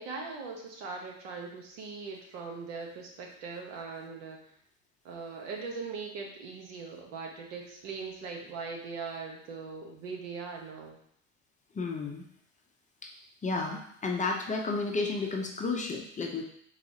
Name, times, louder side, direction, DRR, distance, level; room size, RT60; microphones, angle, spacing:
voice 1, 0.0-4.4 5.0-11.0, right 4 dB, 75° right, 1 dB, 1.3 m, -40 dB
voice 2, 11.7-12.2 13.0-13.1 13.4-16.4, left 3 dB, 20° left, 2 dB, 0.6 m, -32 dB
4.0 x 2.6 x 4.8 m, 0.67 s
supercardioid pair, 105°, 37 cm